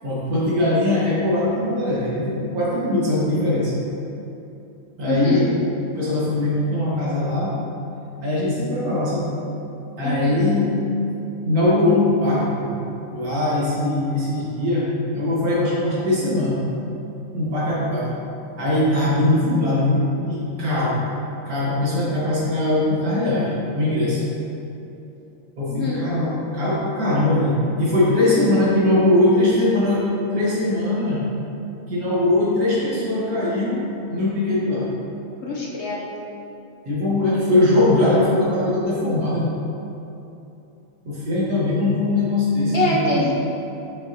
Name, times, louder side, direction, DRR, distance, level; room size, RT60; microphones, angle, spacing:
voice 1, 0.0-3.7 5.0-5.5 5.9-7.5 8.2-9.3 10.0-10.8 11.4-12.7 13.1-14.9 15.1-16.6 17.3-18.1 18.6-21.0 21.5-24.2 25.6-31.2 31.9-33.8 34.1-34.9 36.8-39.5 41.0-43.3, left 1 dB, 85° right, -8 dB, 2.3 m, -21 dB
voice 2, 5.1-5.5 10.0-10.4 25.7-26.0 35.4-36.0 42.7-43.3, left 3 dB, 55° left, -5 dB, 1.2 m, -24 dB
7.0 x 5.9 x 3.0 m, 2.9 s
omnidirectional pair, 1.5 m